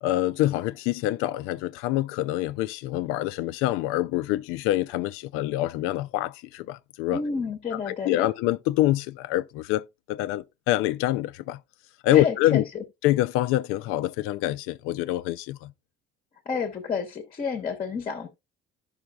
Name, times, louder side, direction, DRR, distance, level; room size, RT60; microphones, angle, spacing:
voice 1, 0.0-7.2 7.9-11.6 12.0-12.6 13.0-15.7, left 15 dB, 85° left, 0.5 m, -26 dB
voice 2, 7.1-8.3 12.1-12.8 16.5-18.3, left 5 dB, 30° left, 0.9 m, -30 dB
14.0 x 5.7 x 2.3 m
cardioid pair, 165°, 21 cm